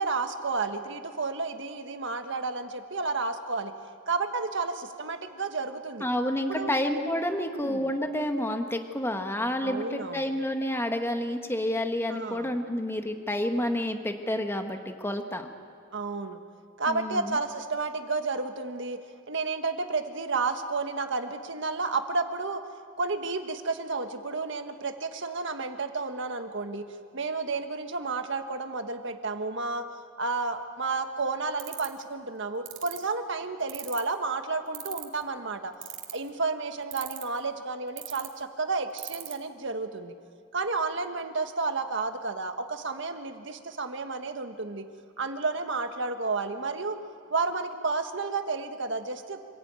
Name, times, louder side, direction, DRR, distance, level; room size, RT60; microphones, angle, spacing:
voice 1, 0.0-3.7 4.1-6.1 6.5-6.7 7.3-7.9 9.6-10.3 12.1-12.6 15.9-16.4 16.8-19.0 19.3-22.6 23.0-29.9 30.2-35.7 36.1-40.1 40.5-44.9 45.2-47.0 47.3-49.4, right 3 dB, 65° right, 6 dB, 1.6 m, -31 dB
voice 2, 6.0-15.5 16.9-17.4, left 1 dB, 10° left, 5 dB, 1.4 m, -29 dB
sound 1, 31.6-32.0 32.7-33.0 33.7-34.1 34.7-35.2 35.8-36.3 36.9-37.4 38.0-38.3 39.0-39.3, right 15 dB, 80° right, 2.2 m, -37 dB
26.0 x 16.0 x 9.0 m, 2.2 s
head